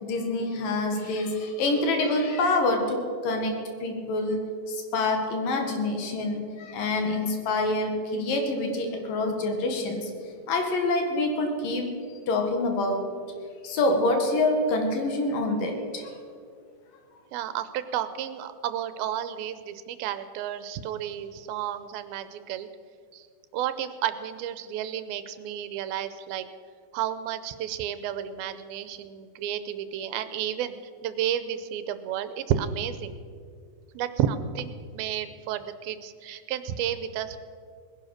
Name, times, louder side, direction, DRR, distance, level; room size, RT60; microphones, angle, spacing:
voice 1, 0.0-10.1 10.5-12.0 12.3-13.1 13.6-16.1, left 2 dB, 65° left, 4 dB, 3.3 m, -26 dB
voice 2, 17.3-22.7 23.1-23.3 23.5-26.5 26.9-30.8 31.0-33.1 33.9-37.4, right 10 dB, 90° right, 12 dB, 2.5 m, -31 dB
19.5 x 10.5 x 6.5 m, 2.2 s
omnidirectional pair, 4.3 m